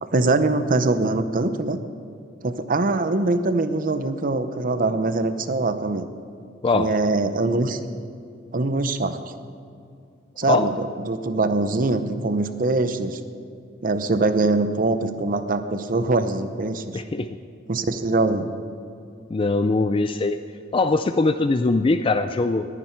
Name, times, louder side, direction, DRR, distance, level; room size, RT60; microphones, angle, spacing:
voice 1, 0.0-1.8 2.4-6.1 6.7-7.8 8.5-9.2 10.4-13.2 13.8-17.0 17.7-18.5, right 2 dB, 45° right, 10 dB, 0.7 m, -23 dB
voice 2, 16.9-17.3 19.3-20.4 20.7-22.7, left 3 dB, 30° left, 9 dB, 0.4 m, -21 dB
19.5 x 9.8 x 4.6 m, 2.4 s
head